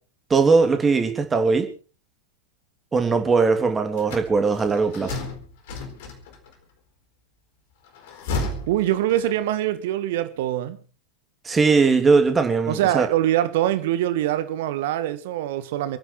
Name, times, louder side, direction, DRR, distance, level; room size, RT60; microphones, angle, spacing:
voice 1, 0.3-1.7 2.9-5.2 11.4-13.1, right 4 dB, 15° right, 3.0 m, -19 dB
sound 1, 4.0-6.5 7.9-9.7, left 2 dB, 50° left, 4.3 m, -33 dB
voice 2, 8.7-10.8 12.7-16.0, right 13 dB, 55° right, 1.7 m, -23 dB
27.5 x 10.0 x 4.5 m
figure-of-eight pair, 90°, 0 cm